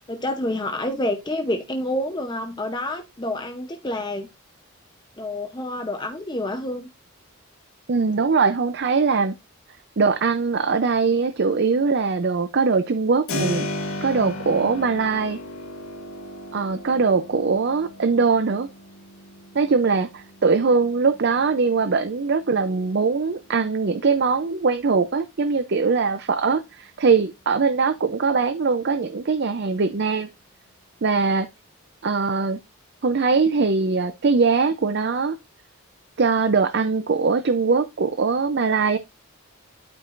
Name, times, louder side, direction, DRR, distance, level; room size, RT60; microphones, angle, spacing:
voice 1, 0.0-4.3 5.2-6.9, left 1 dB, 20° left, 0.7 m, -28 dB
voice 2, 7.9-9.3 10.0-13.7 14.0-15.4 16.5-18.7 19.5-30.3 31.0-31.5 32.0-32.6 33.0-35.4 36.2-39.0, right 4 dB, 50° right, 0.5 m, -21 dB
Keyboard (musical), 13.3-24.0, left 1 dB, 75° left, 1.9 m, -36 dB
12.0 x 4.7 x 2.5 m
head